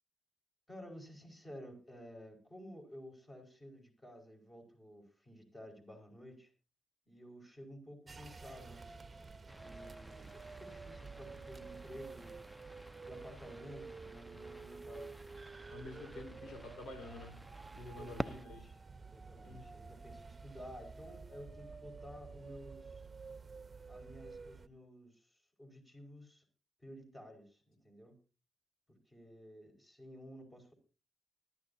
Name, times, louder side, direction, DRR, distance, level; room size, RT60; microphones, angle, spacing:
voice 1, 0.7-6.5 7.1-8.9 9.6-12.4 13.0-15.1 16.1-16.6 18.0-18.8 19.0-23.1 23.9-26.4 26.8-28.2 28.9-30.7, equal, 20° left, 3 dB, 5.3 m, -53 dB
sound 1, 8.1-24.7, right 4 dB, 35° right, 0.9 m, -51 dB
sound 2, 9.5-18.5, equal, ahead, 0.8 m, -50 dB
voice 2, 15.7-17.4 17.7-18.6 19.4-19.7, left 2 dB, 85° left, 6 dB, 4.3 m, -49 dB
21.0 x 12.0 x 2.8 m, 0.34 s
cardioid pair, 75°, 0 cm